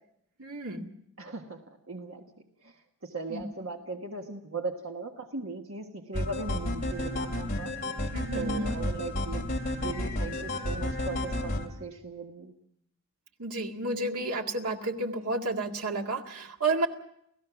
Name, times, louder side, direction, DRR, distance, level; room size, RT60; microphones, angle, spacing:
voice 1, 0.4-0.9 3.3-3.4 8.1-8.7 13.4-16.9, right 2 dB, 90° right, 3 dB, 2.0 m, -31 dB
voice 2, 1.2-2.3 2.6-7.7 8.3-9.5 9.7-12.5, right 3 dB, 70° right, 3 dB, 1.5 m, -38 dB
sound 1, 6.1-11.7, left 1 dB, 35° left, 2.5 m, -32 dB
29.5 x 16.0 x 6.0 m, 0.74 s
head